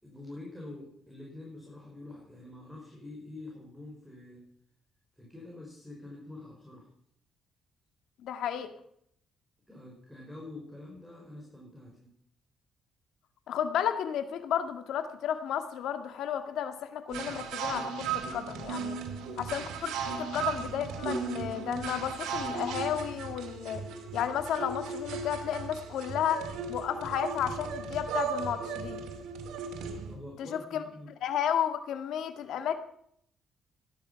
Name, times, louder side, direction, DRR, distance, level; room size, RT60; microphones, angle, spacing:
voice 1, 0.0-4.4 5.2-6.9 9.7-12.1 30.1-31.1, left 2 dB, 5° right, -2 dB, 5.7 m, -46 dB
voice 2, 8.2-8.7 13.5-19.0 19.4-23.8 24.1-26.4 26.7-29.0 30.4-30.8 31.2-32.8, left 9 dB, 80° left, 8 dB, 1.9 m, -32 dB
sound 1, 17.1-30.2, right 5 dB, 85° right, 2.6 m, -36 dB
17.0 x 12.0 x 5.8 m, 0.69 s
cardioid pair, 90°, 0 cm